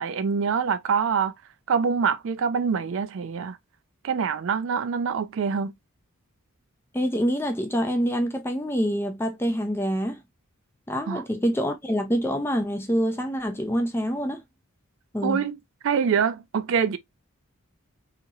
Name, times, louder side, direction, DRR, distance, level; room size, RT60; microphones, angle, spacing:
voice 1, 0.0-1.3 1.7-3.6 4.0-5.7 11.1-11.2 15.2-15.5 15.8-17.0, right 6 dB, 60° right, 0.3 m, -25 dB
voice 2, 6.9-10.2 10.9-14.4 15.1-15.4, equal, 10° left, 0.5 m, -26 dB
2.9 x 2.8 x 2.3 m
head